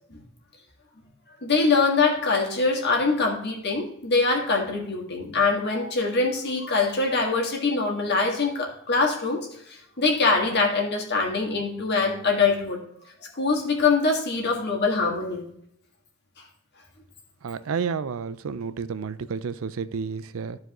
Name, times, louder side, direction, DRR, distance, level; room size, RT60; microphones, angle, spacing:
voice 1, 1.4-12.8 13.2-15.4, left 4 dB, 50° left, 1 dB, 1.9 m, -23 dB
voice 2, 17.4-20.6, right 6 dB, 70° right, 15 dB, 0.4 m, -31 dB
13.5 x 4.7 x 3.0 m, 0.74 s
head